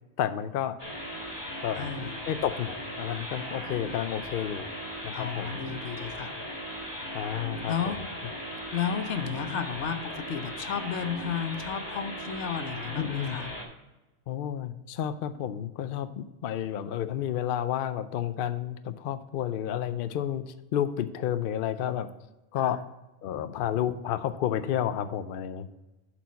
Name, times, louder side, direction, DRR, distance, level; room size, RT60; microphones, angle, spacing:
voice 1, 0.2-0.8 1.6-1.9 2.3-4.7 5.0-5.6 7.1-8.0 13.0-13.4 14.3-22.1 22.5-22.8 23.2-25.7, left 10 dB, 60° left, 11 dB, 0.7 m, -31 dB
sound 1, 0.8-13.6, equal, 35° left, 1.8 m, -38 dB
voice 2, 1.7-2.2 5.1-6.4 7.7-8.0 8.7-13.5 22.6-22.7, left 7 dB, 90° left, 9 dB, 1.1 m, -33 dB
11.5 x 4.6 x 4.0 m, 1.1 s
omnidirectional pair, 1.1 m